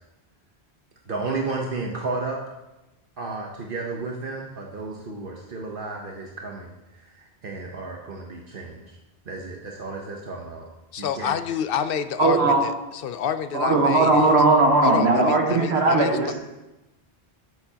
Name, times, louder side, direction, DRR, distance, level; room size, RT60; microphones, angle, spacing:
voice 1, 1.1-2.4 3.2-6.7 7.1-9.0 9.3-10.7 11.0-11.3, right 3 dB, 60° right, 0 dB, 1.1 m, -32 dB
voice 2, 10.9-14.4 14.8-16.3, left 8 dB, 65° left, 12 dB, 0.7 m, -28 dB
voice 3, 12.2-12.6 13.5-16.4, right 3 dB, 80° right, 1 dB, 1.6 m, -18 dB
12.5 x 6.9 x 2.9 m, 1.0 s
omnidirectional pair, 1.1 m